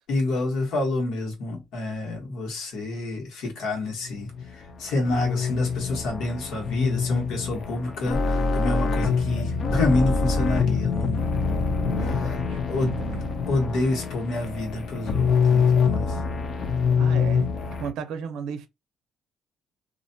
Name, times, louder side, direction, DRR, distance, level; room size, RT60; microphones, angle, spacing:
voice 1, 0.1-11.8 12.7-13.0 13.5-16.2, left 2 dB, 75° left, 1.2 m, -28 dB
sound 1, 4.0-17.9, left 5 dB, 40° left, 0.4 m, -25 dB
voice 2, 11.8-13.5 17.0-17.5 17.8-18.7, right 8 dB, 85° right, 0.5 m, -35 dB
2.5 x 2.2 x 2.6 m
cardioid pair, 170°, 0 cm